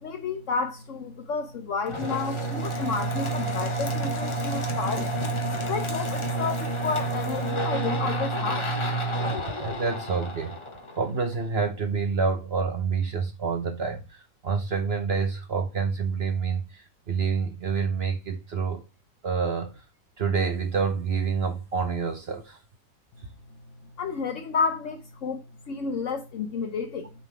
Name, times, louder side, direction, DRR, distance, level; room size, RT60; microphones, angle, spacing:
voice 1, 0.0-5.2 5.7-8.7 24.0-27.1, left 5 dB, 65° left, 0.8 m, -31 dB
sound 1, 1.9-11.4, right 2 dB, 25° left, 0.8 m, -29 dB
voice 2, 9.6-10.6 11.0-18.8 19.2-19.7 20.2-22.6, right 5 dB, 50° right, 0.8 m, -27 dB
6.6 x 3.7 x 4.7 m
omnidirectional pair, 1.8 m